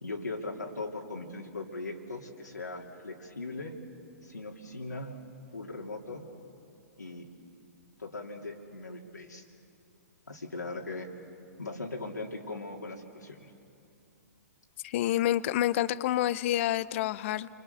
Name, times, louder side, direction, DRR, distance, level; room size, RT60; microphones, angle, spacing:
voice 1, 0.0-3.7 4.2-5.2 5.5-6.3 7.0-7.3 8.0-9.5 10.3-11.1 11.6-13.5, left 2 dB, 90° left, 0 dB, 2.9 m, -39 dB
voice 2, 14.8-17.5, left 13 dB, 45° left, 17 dB, 0.7 m, -28 dB
30.0 x 24.5 x 6.8 m, 2.6 s
figure-of-eight pair, 115°, 9 cm